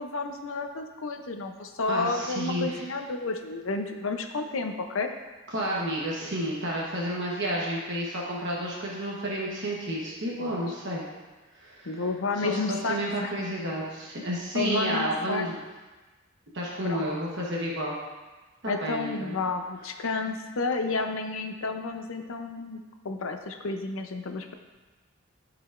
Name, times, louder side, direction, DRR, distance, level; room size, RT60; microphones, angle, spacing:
voice 1, 0.0-5.1 10.4-10.6 11.9-13.5 14.2-14.3 14.5-15.5 16.8-17.1 18.7-24.5, left 3 dB, 75° left, 5 dB, 0.7 m, -31 dB
voice 2, 1.9-2.8 5.5-11.0 11.5-11.9 12.4-15.6 16.5-17.9 18.6-19.3, equal, 60° right, -4 dB, 1.1 m, -31 dB
12.5 x 4.9 x 2.5 m, 1.2 s
head